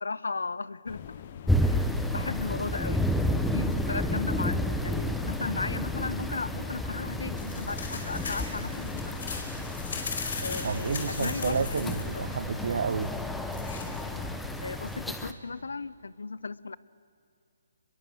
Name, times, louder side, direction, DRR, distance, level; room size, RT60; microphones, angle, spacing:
voice 1, 0.0-1.2 1.6-1.8 2.1-3.1 3.5-9.4 10.4-11.7 12.3-12.4 14.6-16.8, left 4 dB, 85° left, 19 dB, 0.8 m, -36 dB
sound 1, 0.9-14.4, left 8 dB, 40° left, 1.1 m, -44 dB
sound 2, 1.5-15.3, left 1 dB, 5° left, 1.0 m, -31 dB
sound 3, 7.0-14.9, left 4 dB, 60° left, 4.8 m, -39 dB
voice 2, 10.6-13.1, right 6 dB, 65° right, 13 dB, 0.7 m, -30 dB
24.5 x 22.0 x 7.8 m, 2.5 s
hypercardioid pair, 150°, 0 cm